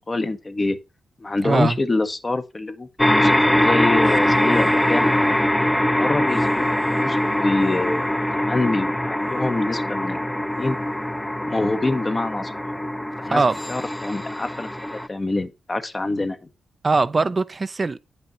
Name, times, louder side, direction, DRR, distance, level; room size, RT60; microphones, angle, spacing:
voice 1, 0.1-0.8 1.2-5.5 5.9-10.8 11.4-12.5 13.2-16.4, left 2 dB, 35° left, 1.0 m, -26 dB
voice 2, 1.4-1.8 13.3-13.5 16.8-18.0, right 3 dB, 40° right, 0.5 m, -20 dB
sound 1, 3.0-15.1, left 1 dB, 10° left, 0.6 m, -22 dB
9.1 x 5.5 x 3.8 m
supercardioid pair, 50°, 0 cm